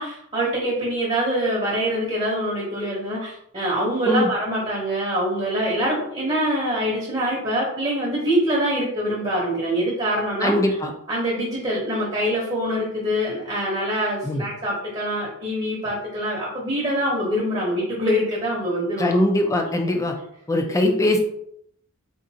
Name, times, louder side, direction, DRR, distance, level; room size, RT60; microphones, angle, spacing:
voice 1, 0.0-10.8 11.1-19.2 20.6-20.9, equal, 30° right, -5 dB, 0.8 m, -24 dB
voice 2, 10.4-10.9 14.2-14.4 19.0-20.1 20.5-21.2, left 1 dB, 15° left, 4 dB, 0.3 m, -21 dB
3.7 x 2.5 x 2.7 m, 0.71 s
head